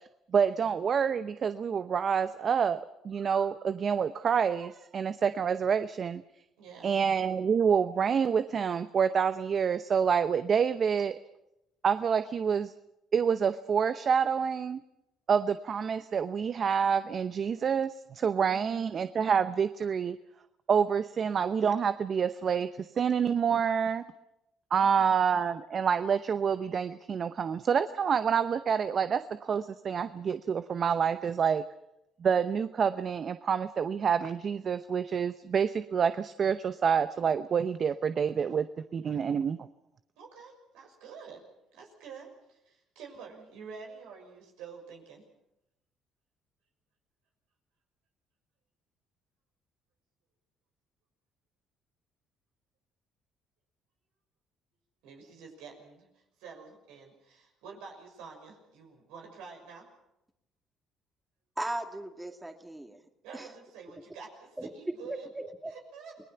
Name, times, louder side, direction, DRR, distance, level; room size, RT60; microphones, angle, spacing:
voice 1, 0.3-6.2 6.8-11.2 11.8-12.7 13.1-14.8 15.3-20.2 20.7-24.0 24.7-31.6 32.2-38.7 38.9-39.6, right 7 dB, 50° right, 12 dB, 0.8 m, -27 dB
voice 2, 6.6-7.0 18.5-18.9 24.7-25.2 40.2-41.4 41.7-45.2 55.0-59.9 63.2-65.3 65.7-66.2, right 5 dB, 85° right, 2 dB, 6.1 m, -48 dB
voice 3, 61.6-63.0 63.3-63.5 64.6-64.7 65.1-65.5, right 1 dB, 10° right, 5 dB, 2.2 m, -37 dB
28.5 x 19.5 x 5.8 m, 0.87 s
supercardioid pair, 70°, 0 cm